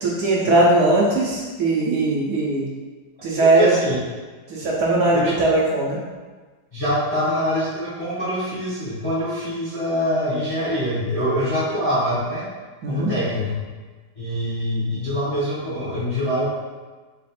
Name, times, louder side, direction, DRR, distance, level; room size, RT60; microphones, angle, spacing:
voice 1, 0.0-2.7 3.2-3.7 4.5-6.0 12.8-13.1, right 2 dB, 65° right, -4 dB, 1.1 m, -19 dB
voice 2, 3.4-4.0 5.1-5.4 6.7-12.5 12.8-13.6 14.2-16.5, equal, 30° left, -10 dB, 0.7 m, -24 dB
4.0 x 2.4 x 4.1 m, 1.4 s
omnidirectional pair, 2.1 m